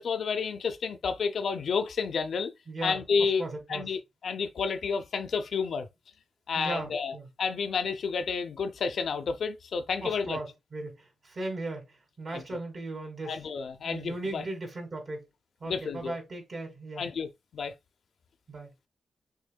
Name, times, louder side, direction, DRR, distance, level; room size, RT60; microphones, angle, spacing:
voice 1, 0.0-2.5 2.8-5.9 6.5-10.4 12.3-12.4 13.3-14.4 15.6-16.1 17.0-17.3 17.5-17.7, left 5 dB, 75° left, 0.6 m, -30 dB
voice 2, 2.7-3.9 6.5-7.3 10.0-13.4 13.8-15.3 15.6-17.1 18.5-18.7, right 2 dB, 55° right, 2.3 m, -37 dB
6.5 x 3.2 x 2.3 m
cardioid pair, 70°, 0 cm